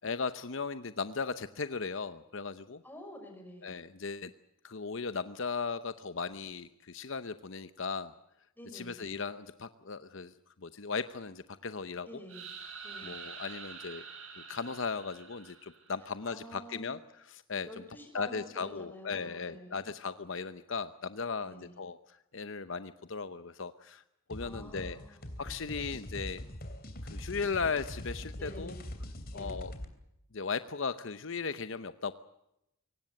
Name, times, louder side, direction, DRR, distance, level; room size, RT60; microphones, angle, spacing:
voice 1, 0.0-2.8 3.6-4.3 4.6-8.1 8.7-10.3 10.6-12.1 13.0-14.0 14.5-17.7 18.1-22.0 22.3-24.0 24.3-25.0 25.4-26.4 27.1-28.7 29.3-29.7 30.3-32.1, left 5 dB, 60° left, 12 dB, 0.8 m, -37 dB
voice 2, 2.8-3.7 8.6-9.1 12.1-12.5 12.8-13.2 16.2-17.0 17.6-19.8 21.4-21.8 24.4-25.2 28.4-28.9 29.3-29.6, equal, 10° left, 3 dB, 5.9 m, -49 dB
sound 1, 12.3-16.1, right 5 dB, 70° right, 5.7 m, -46 dB
sound 2, 24.3-29.9, left 1 dB, 45° left, 3.0 m, -42 dB
24.0 x 18.5 x 7.8 m, 0.83 s
head